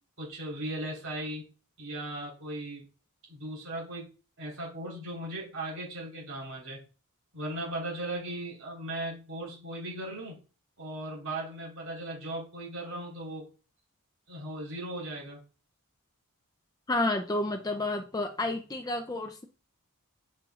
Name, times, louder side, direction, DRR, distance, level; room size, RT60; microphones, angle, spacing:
voice 1, 0.2-1.4 1.8-2.9 3.3-4.1 4.4-6.8 7.3-10.4 10.8-13.5 14.3-15.4, right 1 dB, 65° right, 4.0 m, -37 dB
voice 2, 16.9-19.5, left 2 dB, 15° left, 0.5 m, -30 dB
7.9 x 6.3 x 2.4 m
head